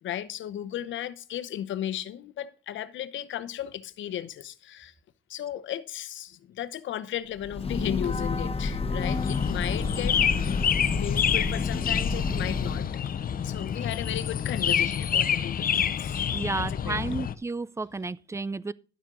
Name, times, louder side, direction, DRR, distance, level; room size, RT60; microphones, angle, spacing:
voice 1, 0.0-4.9 5.3-10.6 10.9-12.9 13.4-17.3, left 11 dB, 75° left, 0.9 m, -35 dB
Breathing / Train, 7.4-12.9, left 4 dB, 30° left, 1.1 m, -30 dB
sound 1, 9.0-17.3, left 8 dB, 45° left, 0.7 m, -28 dB
voice 2, 16.3-18.7, right 3 dB, 15° right, 0.5 m, -32 dB
11.5 x 7.5 x 3.8 m
cardioid pair, 90°, 20 cm